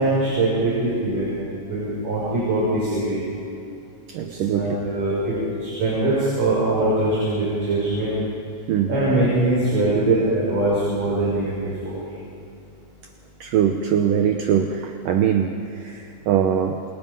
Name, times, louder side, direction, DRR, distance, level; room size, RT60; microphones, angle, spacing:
voice 1, 0.0-1.3 1.7-3.2 4.2-8.2 8.9-12.0, right 2 dB, 45° right, -7 dB, 7.6 m, -22 dB
voice 2, 4.1-4.8 8.7-8.9 13.4-16.8, right 8 dB, 75° right, 5 dB, 2.0 m, -22 dB
28.5 x 28.0 x 5.4 m, 2.6 s
omnidirectional pair, 5.2 m